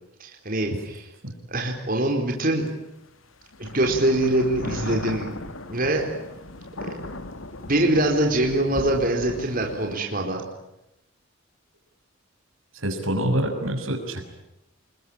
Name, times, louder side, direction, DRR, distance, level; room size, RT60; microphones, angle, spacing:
voice 1, 0.2-1.1 1.5-2.7 3.6-5.3 5.7-6.1 6.8-6.9 7.7-10.4, right 1 dB, 45° right, 1 dB, 4.3 m, -23 dB
sound 1, 2.7-2.8 3.5-10.0, left 2 dB, 80° left, 2.3 m, -36 dB
voice 2, 12.7-14.3, right 1 dB, 85° right, 5 dB, 6.4 m, -26 dB
29.0 x 21.5 x 9.0 m, 0.89 s
head